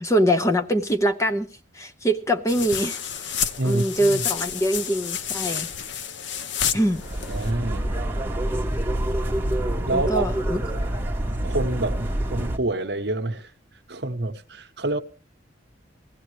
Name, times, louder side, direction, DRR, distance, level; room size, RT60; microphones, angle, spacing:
voice 1, 0.0-1.5 1.7-3.3 3.6-5.7 6.7-7.0 9.9-10.6, equal, 15° left, 0.7 m, -23 dB
sound 1, 2.5-7.5, left 8 dB, 70° left, 0.7 m, -30 dB
voice 2, 3.6-4.2 7.3-7.9 9.9-10.3 10.6-10.7 11.4-13.5 13.9-15.0, right 2 dB, 60° right, 0.9 m, -27 dB
sound 2, 6.8-12.6, right 1 dB, 10° right, 1.0 m, -26 dB
18.5 x 15.0 x 3.2 m
head